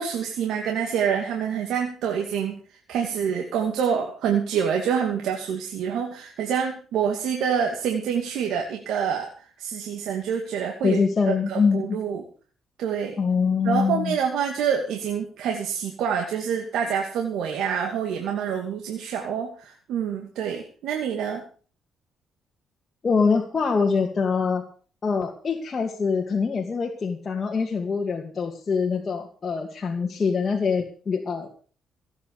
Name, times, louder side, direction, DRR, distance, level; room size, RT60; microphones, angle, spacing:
voice 1, 0.0-2.6 2.9-9.3 9.6-11.0 11.5-12.2 12.8-13.2 13.6-21.4, right 7 dB, 80° right, 2 dB, 2.5 m, -26 dB
voice 2, 10.8-12.0 13.2-14.2 23.0-24.7 25.0-31.5, left 5 dB, 35° left, 1 dB, 2.4 m, -24 dB
16.5 x 8.9 x 6.7 m, 0.41 s
cardioid pair, 90°, 0 cm